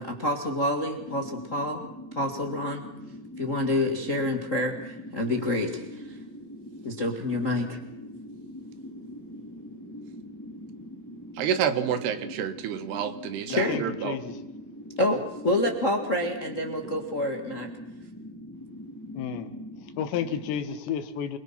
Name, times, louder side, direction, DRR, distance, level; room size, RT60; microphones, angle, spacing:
voice 1, 0.0-1.8 2.1-2.8 3.4-6.2 6.8-7.8 13.5-13.8 15.0-17.7, left 1 dB, 45° left, 3 dB, 0.9 m, -28 dB
sound 1, 0.9-20.5, equal, 5° left, 1.7 m, -42 dB
voice 2, 11.4-14.2, right 8 dB, 70° right, 10 dB, 3.4 m, -29 dB
voice 3, 13.5-14.4 19.2-19.5 19.8-21.4, left 8 dB, 85° left, 9 dB, 3.8 m, -32 dB
28.0 x 22.5 x 5.9 m, 0.93 s
omnidirectional pair, 5.0 m